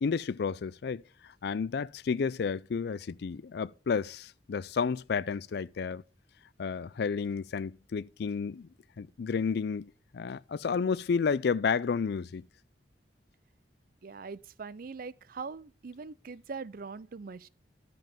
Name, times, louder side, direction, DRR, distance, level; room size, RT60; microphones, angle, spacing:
voice 1, 0.0-6.0 6.6-8.7 9.0-12.4, left 5 dB, 65° left, 0.4 m, -31 dB
voice 2, 14.0-17.5, right 4 dB, 55° right, 0.5 m, -42 dB
11.5 x 7.7 x 3.6 m
head